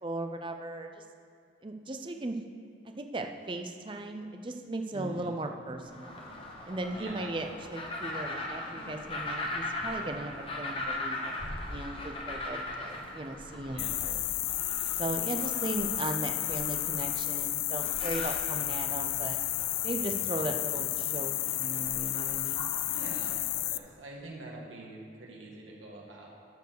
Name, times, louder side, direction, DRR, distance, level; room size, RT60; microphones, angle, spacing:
voice 1, 0.0-1.0 1.6-2.4 3.0-6.2 6.6-14.2 14.9-19.4 19.8-22.7, right 2 dB, 25° right, 5 dB, 0.5 m, -37 dB
voice 2, 4.9-5.4 6.9-7.4 13.7-14.2 22.9-26.3, right 2 dB, 85° right, -2 dB, 1.9 m, -45 dB
sound 1, 5.8-23.6, left 1 dB, 30° left, 1.0 m, -40 dB
sound 2, 13.8-23.8, left 17 dB, 85° left, 0.3 m, -32 dB
13.0 x 4.6 x 6.6 m, 2.4 s
head